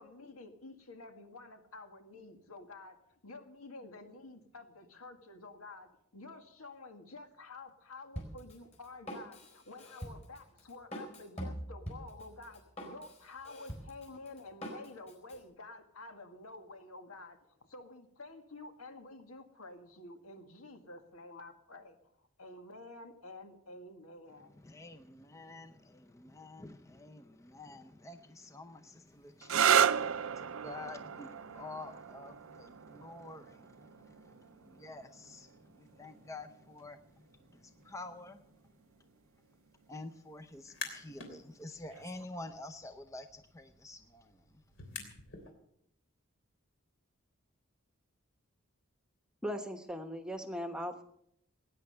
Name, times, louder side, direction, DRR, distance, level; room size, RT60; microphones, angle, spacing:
voice 1, 0.0-22.0 22.4-24.6, left 2 dB, 85° left, 6 dB, 2.0 m, -50 dB
Drum kit, 8.2-15.4, equal, 30° left, 4.3 m, -44 dB
voice 2, 24.5-38.7 39.9-44.6, left 2 dB, 15° left, 7 dB, 0.6 m, -49 dB
sound 1, 29.4-36.9 37.9-38.4 41.9-42.2, right 8 dB, 75° right, 0.5 m, -33 dB
sound 2, 40.5-41.3 41.7-45.5, left 5 dB, 65° left, 3.1 m, -48 dB
voice 3, 49.4-51.0, equal, 5° right, 7 dB, 1.1 m, -38 dB
19.0 x 9.6 x 6.7 m, 0.73 s
head